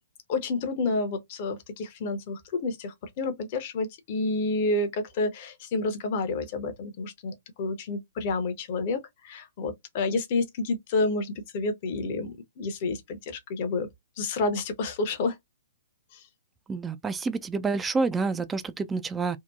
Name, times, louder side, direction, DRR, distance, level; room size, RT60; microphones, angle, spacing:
voice 1, 0.3-13.9 14.2-15.3 16.1-16.2, left 3 dB, 40° left, 0.7 m, -29 dB
voice 2, 16.7-19.4, right 4 dB, 10° right, 0.3 m, -28 dB
2.8 x 2.1 x 2.3 m
figure-of-eight pair, 120°, 0 cm